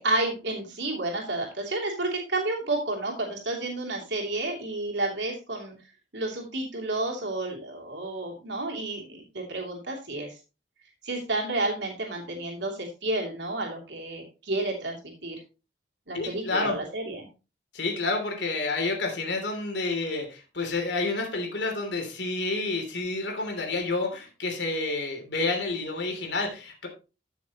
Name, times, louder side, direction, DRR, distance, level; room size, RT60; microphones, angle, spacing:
voice 1, 0.0-5.7 6.1-10.3 11.0-15.4 16.1-17.3, right 2 dB, 75° right, 0 dB, 2.9 m, -31 dB
voice 2, 16.1-16.8 17.7-26.9, left 3 dB, 75° left, 2 dB, 3.1 m, -29 dB
14.0 x 6.5 x 3.0 m, 0.31 s
head